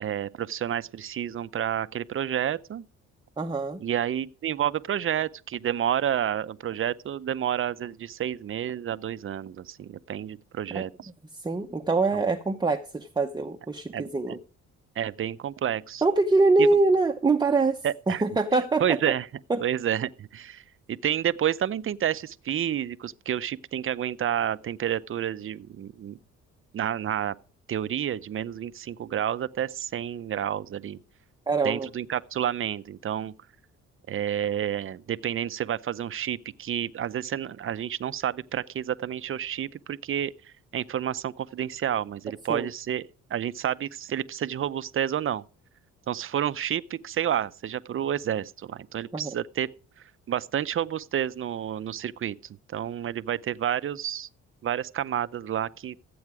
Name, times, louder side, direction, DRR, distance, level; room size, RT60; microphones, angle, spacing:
voice 1, 0.0-2.8 3.8-11.1 12.1-12.2 13.9-14.4 15.0-16.0 16.6-16.7 17.8-18.2 18.8-19.2 19.6-20.6 20.9-26.2 26.7-27.3 27.7-31.0 31.6-33.3 34.1-40.3 40.7-45.4 46.1-49.7 50.3-52.3 52.7-54.3 54.6-55.9, right 10 dB, 45° right, 0.6 m, -30 dB
voice 2, 3.4-3.8 10.7-10.8 11.4-14.4 16.0-17.8 18.1-19.0 19.5-19.6 31.5-31.9 42.5-42.7 49.1-49.3, right 3 dB, 15° right, 0.8 m, -24 dB
13.5 x 8.6 x 4.8 m
cardioid pair, 90°, 30 cm